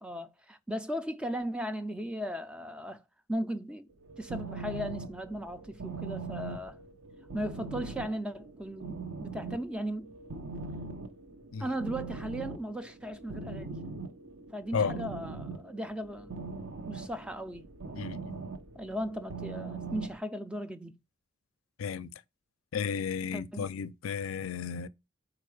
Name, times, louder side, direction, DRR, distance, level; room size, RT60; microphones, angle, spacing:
voice 1, 0.0-3.0 3.3-3.9 4.2-6.8 7.3-10.1 11.6-13.8 14.5-16.5 16.9-17.7 18.8-20.9 23.3-23.7, equal, 5° right, 0.3 m, -37 dB
sound 1, 3.9-20.2, right 4 dB, 75° right, 0.8 m, -41 dB
voice 2, 17.9-18.4 21.8-22.1 22.7-24.9, left 6 dB, 85° left, 0.4 m, -33 dB
4.6 x 2.4 x 4.7 m
head